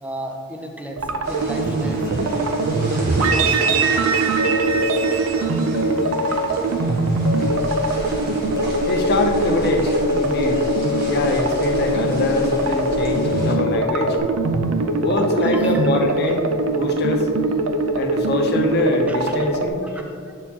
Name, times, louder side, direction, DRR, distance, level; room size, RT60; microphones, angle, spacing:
voice 1, 0.0-2.6 3.2-3.9 15.2-15.9 16.3-16.4 19.1-19.6 19.8-20.3, equal, 5° right, 3 dB, 0.4 m, -35 dB
sound 1, 1.0-19.7, right 3 dB, 70° right, 0.4 m, -22 dB
sound 2, 1.2-13.5, right 1 dB, 45° right, 1.3 m, -34 dB
sound 3, 4.4-5.1 5.7-6.5 7.3-7.9 8.5-9.3 9.9-14.2, left 8 dB, 90° left, 0.4 m, -26 dB
voice 2, 8.9-10.7 11.0-14.2 15.0-16.5 16.8-17.3 17.9-20.0, left 2 dB, 45° left, 3 dB, 0.6 m, -23 dB
8.1 x 4.3 x 2.8 m, 2.3 s
head